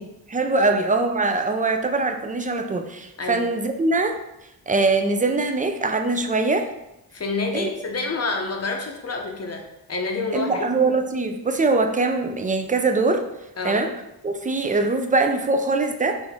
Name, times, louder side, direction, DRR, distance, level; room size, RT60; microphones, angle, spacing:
voice 1, 0.0-4.2 4.7-6.7 7.5-7.7 10.3-13.3 13.6-13.9 14.2-16.2, right 3 dB, 20° right, 5 dB, 0.4 m, -22 dB
voice 2, 3.2-3.5 7.1-10.7 13.6-13.8, left 3 dB, 40° left, 2 dB, 0.8 m, -28 dB
4.1 x 3.4 x 3.5 m, 0.90 s
wide cardioid pair, 95°, 39 cm